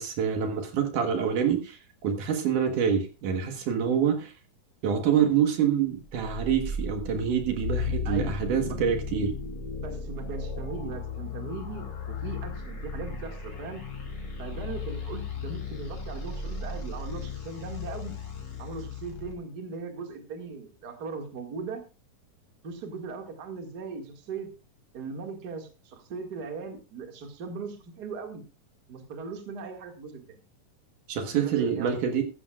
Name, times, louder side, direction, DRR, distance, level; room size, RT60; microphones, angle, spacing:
voice 1, 0.0-4.3 4.8-9.3 31.1-32.2, right 7 dB, 65° right, 5 dB, 2.8 m, -26 dB
sound 1, 6.1-19.3, left 4 dB, 40° left, 5.0 m, -35 dB
voice 2, 9.8-13.9 14.4-18.2 18.6-21.8 22.6-24.5 24.9-28.4 28.9-30.4 31.3-32.0, right 4 dB, 35° right, 4 dB, 1.9 m, -38 dB
14.5 x 13.5 x 2.4 m, 0.30 s
omnidirectional pair, 4.1 m